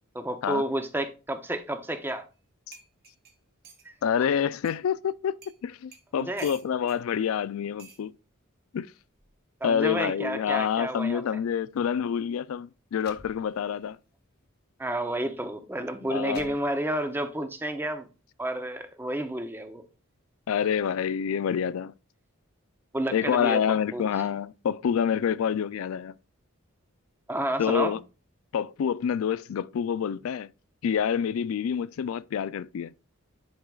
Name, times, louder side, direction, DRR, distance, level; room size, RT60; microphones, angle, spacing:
voice 1, 0.1-2.3 3.8-3.9 6.2-6.5 9.6-11.2 14.8-18.1 18.4-19.9 22.9-23.6 23.9-24.0 27.3-27.9, right 1 dB, 10° right, 0.6 m, -30 dB
sound 1, 2.3-2.4 2.7-3.9 4.6-4.8 5.4-5.6 5.9-7.0 7.8-8.0 9.1-9.4, right 6 dB, 45° right, 1.3 m, -50 dB
voice 2, 4.0-8.1 8.7-8.9 9.6-14.0 16.1-16.5 20.5-21.9 23.1-26.2 27.6-28.0 28.5-30.5 30.8-32.9, left 8 dB, 80° left, 0.3 m, -27 dB
sound 2, 11.7-11.9 12.6-12.7 12.9-13.9 14.4-14.6 15.4-15.5 16.0-17.1, left 4 dB, 50° left, 1.0 m, -51 dB
10.5 x 4.6 x 2.3 m
head